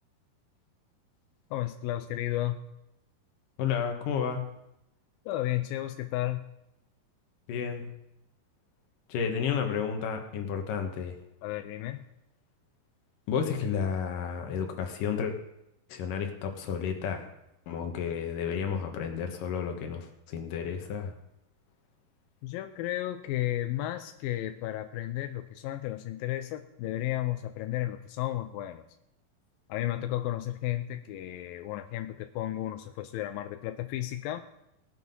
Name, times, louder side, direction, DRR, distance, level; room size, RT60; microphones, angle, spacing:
voice 1, 1.5-2.6 5.3-6.5 11.4-12.0 22.4-28.8 29.7-34.5, left 14 dB, 80° left, 8 dB, 2.1 m, -33 dB
voice 2, 3.6-4.4 7.5-7.9 9.1-11.2 13.3-15.3 15.9-17.3 17.7-21.1, left 7 dB, 65° left, 4 dB, 2.7 m, -31 dB
18.5 x 7.8 x 5.4 m, 0.86 s
omnidirectional pair, 4.7 m